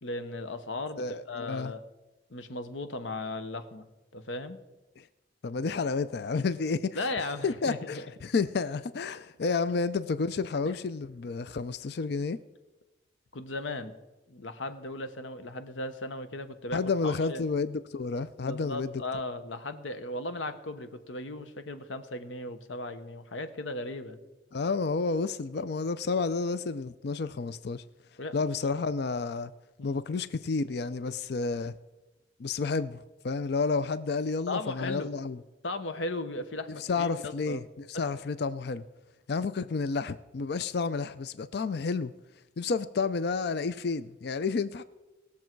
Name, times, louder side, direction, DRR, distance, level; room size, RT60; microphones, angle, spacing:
voice 1, 0.0-1.8 2.3-3.9 4.1-4.6 6.9-8.0 10.6-10.7 13.3-13.9 14.3-17.4 18.4-24.2 28.2-28.7 29.8-30.0 34.5-35.1 35.6-37.6 37.9-38.1, left 2 dB, 90° left, 1.0 m, -37 dB
voice 2, 1.0-1.7 5.0-5.1 5.4-7.0 7.4-12.4 16.7-18.9 24.5-27.8 28.3-29.5 29.8-31.7 32.4-35.4 36.9-38.8 39.3-42.1 42.6-44.8, left 4 dB, 60° left, 0.4 m, -30 dB
19.5 x 7.2 x 4.6 m
head